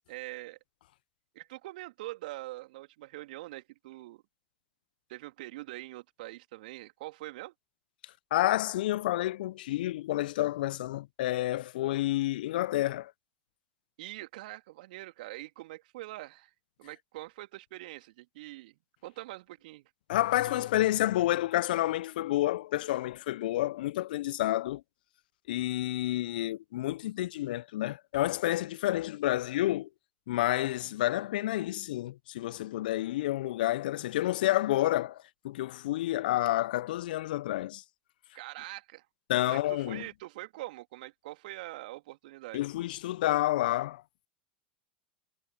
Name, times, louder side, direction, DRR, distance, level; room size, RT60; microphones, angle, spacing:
voice 1, 0.1-0.6 1.3-4.2 5.1-7.5 14.0-16.5 16.8-19.8 20.5-20.6 38.3-39.0 39.4-42.6, right 18 dB, 65° right, 3.2 m, -44 dB
voice 2, 8.3-13.1 20.1-24.8 25.5-29.9 30.3-37.8 39.3-40.0 42.5-44.0, left 15 dB, 65° left, 0.9 m, -29 dB
figure-of-eight pair, 80°, 5 cm